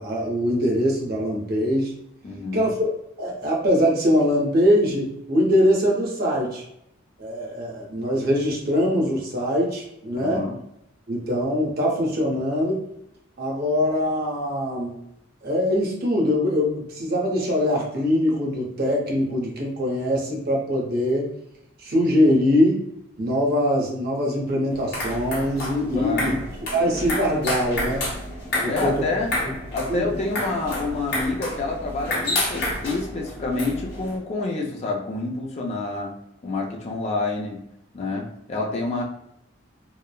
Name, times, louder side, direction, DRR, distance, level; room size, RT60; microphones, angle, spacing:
voice 1, 0.0-1.9 2.5-2.9 3.2-6.6 7.2-10.5 11.1-12.8 13.4-15.0 15.4-21.3 21.8-22.8 23.2-26.4 26.7-28.1 28.6-29.0 29.9-30.1, equal, 50° right, -2 dB, 0.7 m, -22 dB
voice 2, 2.2-2.7 10.1-10.5 25.9-26.4 28.6-29.3 29.7-36.1 36.4-37.6 37.9-39.0, left 3 dB, 30° left, 0 dB, 0.4 m, -28 dB
sound 1, 24.7-34.2, left 1 dB, 55° left, 0.9 m, -30 dB
3.0 x 2.0 x 2.2 m, 0.79 s
head